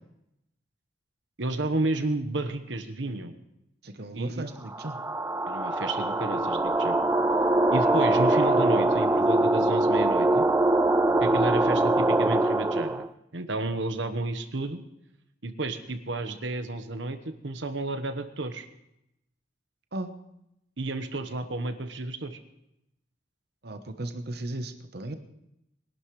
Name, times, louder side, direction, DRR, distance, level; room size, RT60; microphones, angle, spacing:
voice 1, 1.4-3.3 4.1-4.5 5.5-7.0 7.7-10.5 11.2-13.1 13.3-14.8 15.4-18.7 20.8-22.4, right 2 dB, 80° right, 9 dB, 1.2 m, -31 dB
voice 2, 3.8-5.0 19.9-20.1 23.6-25.1, right 1 dB, 60° right, 7 dB, 1.0 m, -36 dB
sound 1, 4.7-13.1, right 2 dB, 15° right, 0.4 m, -23 dB
23.0 x 12.0 x 3.2 m, 0.84 s
head